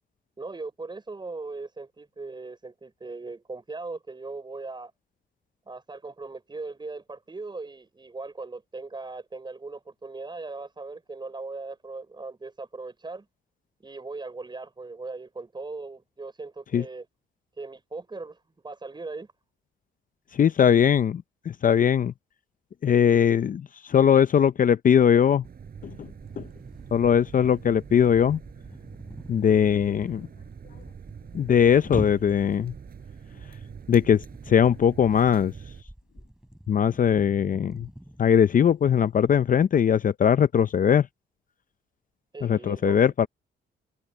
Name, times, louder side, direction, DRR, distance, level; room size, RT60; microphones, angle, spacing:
voice 1, 0.4-4.9 5.7-13.3 13.8-17.1 17.6-18.4 18.6-19.3 42.3-43.1, right 3 dB, 20° right, 6.0 m, -39 dB
voice 2, 20.3-22.1 22.8-25.4 25.8-26.1 26.4-26.5 26.9-28.4 29.3-30.3 31.3-32.7 33.9-35.5 36.7-37.9 38.2-41.1 42.4-43.3, left 8 dB, 45° left, 0.6 m, -20 dB
sound 1, 25.4-35.8, right 7 dB, 50° right, 7.7 m, -44 dB
sound 2, 26.2-39.7, equal, 5° right, 4.3 m, -44 dB
cardioid pair, 90°, 20 cm